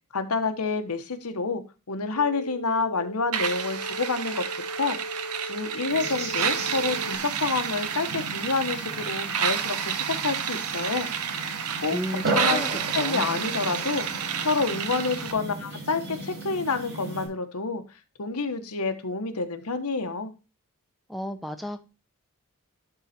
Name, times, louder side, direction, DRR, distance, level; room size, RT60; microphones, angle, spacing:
voice 1, 0.1-1.6 1.9-4.4 4.8-5.0 5.4-11.1 11.8-12.0 12.3-14.1 14.4-17.8 18.2-20.3, left 4 dB, 85° left, 8 dB, 1.2 m, -28 dB
sound 1, 2.2-7.2, equal, 55° left, 0.6 m, -38 dB
sound 2, 3.3-15.3, right 8 dB, 85° right, 1.0 m, -30 dB
sound 3, 5.9-17.3, right 2 dB, 50° right, 4.5 m, -36 dB
voice 2, 11.9-12.7 13.0-13.3 21.1-21.8, equal, ahead, 5 dB, 0.8 m, -33 dB
12.0 x 4.0 x 4.3 m, 0.29 s
head